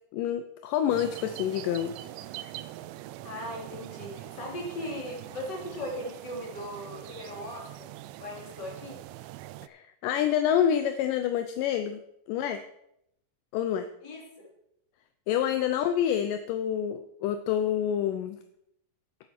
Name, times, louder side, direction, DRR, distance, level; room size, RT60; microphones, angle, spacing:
voice 1, 0.1-1.9 9.6-12.0 12.3-12.6 13.5-13.9 15.3-18.4, left 9 dB, 80° left, 9 dB, 2.1 m, -27 dB
sound 1, 0.9-9.7, right 15 dB, 80° right, 2.0 m, -43 dB
voice 2, 3.2-7.9 8.2-9.0 14.0-14.5, left 1 dB, 30° left, -1 dB, 3.0 m, -38 dB
11.5 x 7.6 x 5.9 m, 0.78 s
omnidirectional pair, 4.1 m